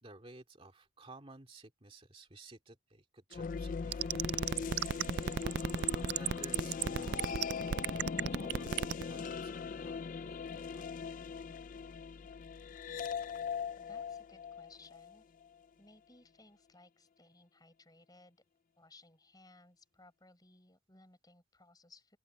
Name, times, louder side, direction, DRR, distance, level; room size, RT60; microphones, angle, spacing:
voice 1, 0.0-7.4 7.8-10.8, right 2 dB, 25° right, 2.6 m, -56 dB
sound 1, 3.3-15.5, left 5 dB, 40° left, 0.3 m, -40 dB
sound 2, 3.9-9.0, right 8 dB, 50° right, 0.4 m, -32 dB
voice 2, 13.8-15.2 15.8-18.4 18.8-22.2, left 2 dB, 20° left, 4.8 m, -61 dB
open air
head